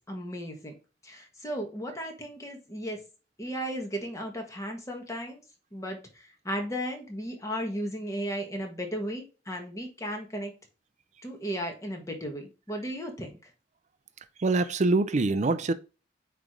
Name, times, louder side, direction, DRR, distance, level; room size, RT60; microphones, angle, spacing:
voice 1, 0.1-0.7 1.0-3.0 3.4-5.4 5.7-10.5 11.2-13.3, equal, 20° left, 1.5 m, -35 dB
voice 2, 14.4-15.7, right 3 dB, 40° right, 0.5 m, -24 dB
8.8 x 3.3 x 3.7 m
head